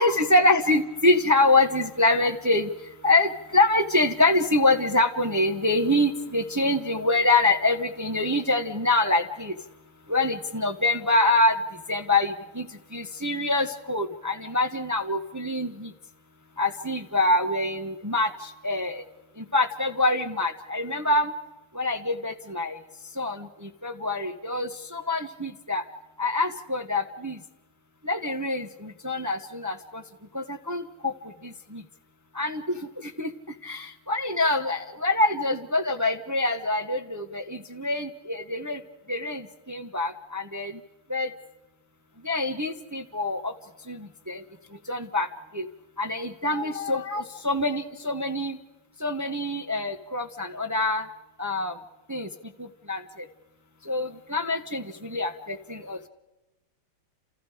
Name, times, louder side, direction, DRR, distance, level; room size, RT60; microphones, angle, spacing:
voice 1, 0.0-2.7 3.0-9.5 10.1-11.5 11.9-12.7 12.9-15.9 16.6-19.0 19.5-21.3 21.7-22.7 23.2-23.5 23.8-25.8 26.2-27.4 28.0-30.0 30.3-31.1 31.7-31.8 32.3-32.6 33.0-33.3 33.6-38.8 39.1-39.4 39.7-40.7 41.1-41.3 42.2-43.5 43.9-44.0 44.3-44.4 44.9-45.3 45.5-45.7 46.0-48.6 49.0-51.1 51.4-51.7 52.1-52.3 52.9-53.0 53.9-56.1, left 2 dB, 15° right, 6 dB, 0.6 m, -25 dB
30.0 x 28.5 x 5.0 m, 1.0 s
omnidirectional pair, 2.4 m